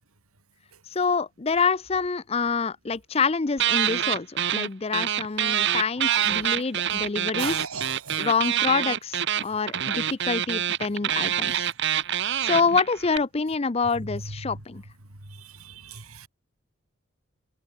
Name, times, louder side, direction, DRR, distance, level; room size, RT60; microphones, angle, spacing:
voice 1, 0.9-7.6 8.2-11.7 12.4-14.8, left 5 dB, 30° left, 0.5 m, -26 dB
sound 1, 3.6-4.7 4.9-13.2, right 10 dB, 55° right, 1.2 m, -26 dB
voice 2, 6.1-6.5 7.4-8.3 12.5-12.6 14.1-14.2 15.2-16.3, right 5 dB, 90° right, 4.2 m, -37 dB
head